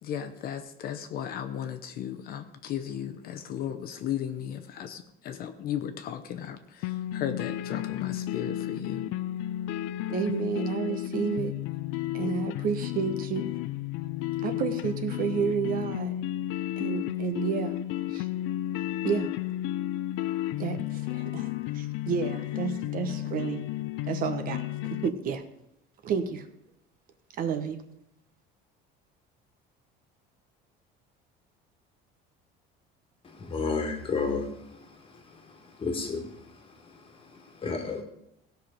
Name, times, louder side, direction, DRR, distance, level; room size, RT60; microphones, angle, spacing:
voice 1, 0.0-9.0, left 9 dB, 50° left, 8 dB, 0.8 m, -35 dB
sound 1, 6.8-25.1, left 14 dB, 70° left, 0.5 m, -32 dB
voice 2, 10.1-11.5 12.1-13.4 14.4-16.1 16.8-17.8 18.1-18.3 19.0-19.3 20.6-23.6 24.1-25.4 26.0-26.5 27.4-27.8, right 6 dB, 45° right, 8 dB, 1.0 m, -30 dB
voice 3, 33.4-34.4 35.8-36.2 37.6-38.0, left 4 dB, 25° left, 5 dB, 1.7 m, -30 dB
17.0 x 5.9 x 5.1 m, 0.79 s
cardioid pair, 145°, 20 cm